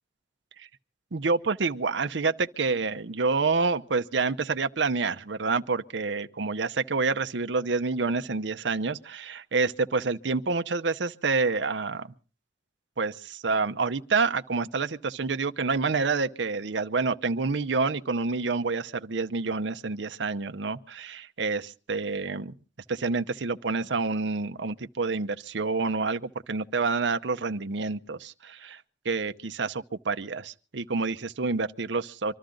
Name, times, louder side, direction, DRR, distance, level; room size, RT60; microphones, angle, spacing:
voice 1, 1.1-12.1 13.0-22.5 22.9-32.3, right 4 dB, 80° right, 0.7 m, -28 dB
25.0 x 13.0 x 3.8 m
head